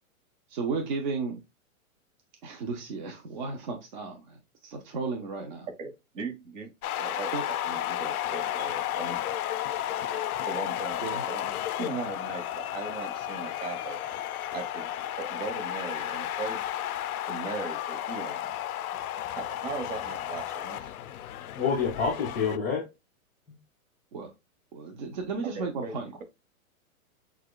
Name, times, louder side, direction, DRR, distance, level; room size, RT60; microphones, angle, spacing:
voice 1, 0.5-1.4 2.4-5.7 7.3-7.4 10.1-10.3 11.0-11.2 24.1-24.3 24.7-26.1, right 4 dB, 35° right, 0.6 m, -34 dB
voice 2, 5.8-6.7 7.0-9.2 10.4-11.5 11.8-14.0 14.5-16.7 17.2-18.5 19.4-20.9 25.4-26.2, right 4 dB, 60° right, 1.4 m, -39 dB
sound 1, 6.8-22.6, left 12 dB, 85° left, 0.5 m, -33 dB
voice 3, 21.5-22.8 23.5-23.6, left 6 dB, 15° left, 0.4 m, -27 dB
6.3 x 2.3 x 2.3 m
hypercardioid pair, 165°, 43 cm